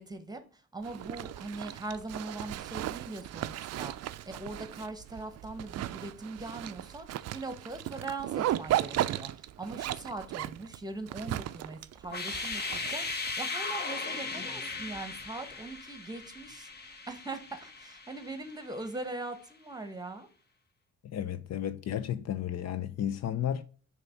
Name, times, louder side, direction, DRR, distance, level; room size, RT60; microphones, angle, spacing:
voice 1, 0.0-20.3, right 2 dB, 15° right, 1.1 m, -41 dB
Zipper (clothing), 0.8-13.3, right 13 dB, 60° right, 0.4 m, -36 dB
sound 1, 12.0-18.9, left 3 dB, 35° left, 1.0 m, -38 dB
voice 2, 21.0-23.6, left 10 dB, 60° left, 0.6 m, -33 dB
6.7 x 3.1 x 5.7 m
cardioid pair, 90°, 30 cm